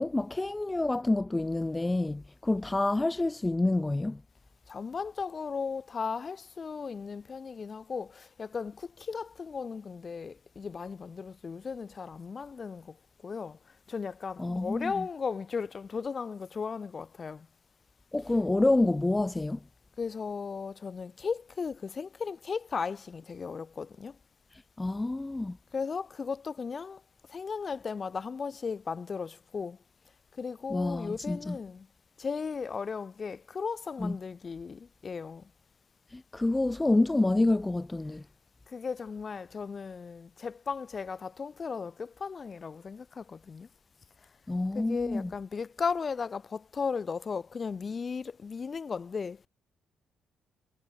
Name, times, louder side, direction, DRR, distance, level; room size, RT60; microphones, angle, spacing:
voice 1, 0.0-4.2 14.4-15.1 18.1-19.6 24.8-25.6 30.7-31.6 34.0-34.2 36.1-38.2 44.5-45.3, left 2 dB, 15° left, 0.7 m, -28 dB
voice 2, 4.7-13.0 13.2-13.6 13.9-17.5 20.0-24.2 25.7-27.0 27.3-29.8 30.4-31.9 32.2-35.5 38.7-43.7 44.7-49.5, left 5 dB, 40° left, 6.1 m, -36 dB
cardioid pair, 90°, 0 cm